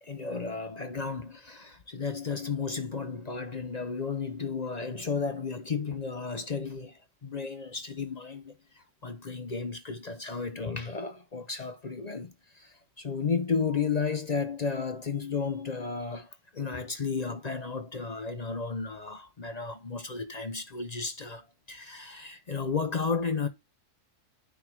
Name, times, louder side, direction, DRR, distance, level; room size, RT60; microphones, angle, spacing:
voice 1, 0.0-23.5, left 5 dB, 40° left, 0.6 m, -33 dB
9.7 x 3.6 x 4.4 m
omnidirectional pair, 1.6 m